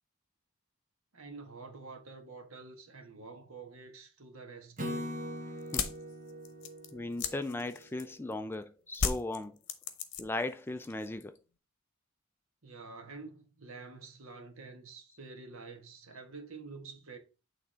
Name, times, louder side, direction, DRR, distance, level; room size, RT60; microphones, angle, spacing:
voice 1, 1.1-5.3 12.6-17.2, right 4 dB, 65° right, 1.4 m, -48 dB
Acoustic guitar / Strum, 4.8-8.1, equal, 40° right, 1.2 m, -41 dB
sound 1, 5.6-8.3 8.9-10.5 10.8-11.4, left 6 dB, 60° left, 1.0 m, -35 dB
voice 2, 6.9-9.6 10.2-11.4, left 2 dB, 10° left, 0.3 m, -37 dB
8.8 x 3.5 x 4.3 m
head